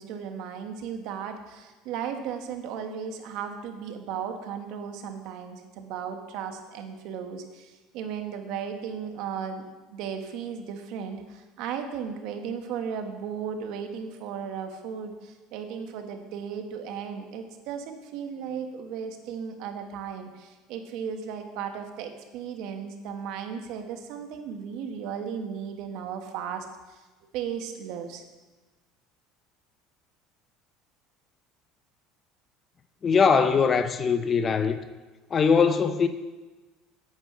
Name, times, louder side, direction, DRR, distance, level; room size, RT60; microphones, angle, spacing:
voice 1, 0.0-9.6 9.9-27.0 27.3-28.2, right 7 dB, 65° right, 1.4 m, -35 dB
voice 2, 33.0-34.9 35.3-36.1, left 5 dB, 30° left, 0.7 m, -21 dB
8.8 x 8.3 x 6.0 m
cardioid pair, 130°, 0 cm